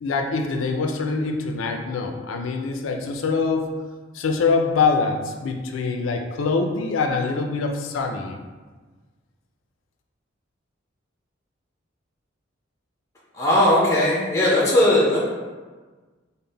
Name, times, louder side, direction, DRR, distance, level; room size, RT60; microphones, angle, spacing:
voice 1, 0.0-3.7 4.1-8.4, left 4 dB, 80° left, 3 dB, 0.4 m, -24 dB
voice 2, 13.3-15.2, left 1 dB, 15° left, -5 dB, 0.5 m, -18 dB
3.7 x 2.1 x 3.8 m, 1.3 s
head